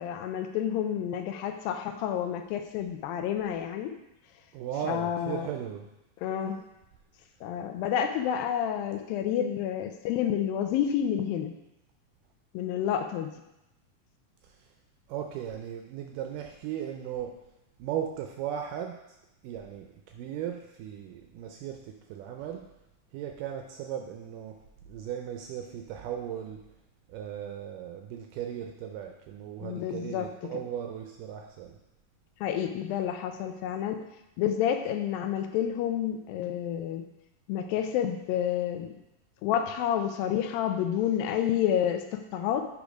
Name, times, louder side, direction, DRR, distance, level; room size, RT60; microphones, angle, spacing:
voice 1, 0.0-3.9 4.9-5.5 6.2-6.6 7.4-11.5 12.5-13.3 29.6-30.3 32.4-34.1 34.4-37.0 37.5-38.9 39.4-42.7, left 9 dB, 80° left, 7 dB, 2.3 m, -29 dB
voice 2, 4.5-5.9 14.4-14.6 15.1-17.3 17.8-19.2 19.4-22.7 23.1-24.6 24.9-26.6 27.1-31.8, right 9 dB, 80° right, 3 dB, 2.0 m, -37 dB
8.2 x 3.5 x 5.1 m, 0.90 s
omnidirectional pair, 4.2 m